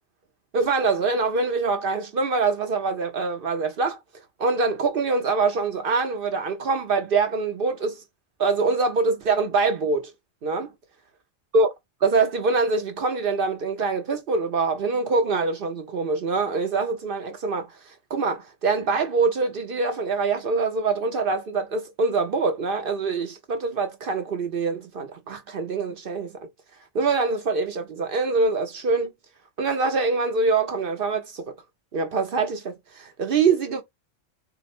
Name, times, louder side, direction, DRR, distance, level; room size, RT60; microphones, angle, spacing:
voice 1, 0.5-4.0 4.4-8.0 8.4-10.1 10.4-10.7 11.5-11.7 12.0-17.7 18.1-26.3 26.9-29.1 29.6-31.5 31.9-33.8, right 4 dB, 55° right, 0.7 m, -24 dB
3.8 x 2.0 x 4.2 m
omnidirectional pair, 1.3 m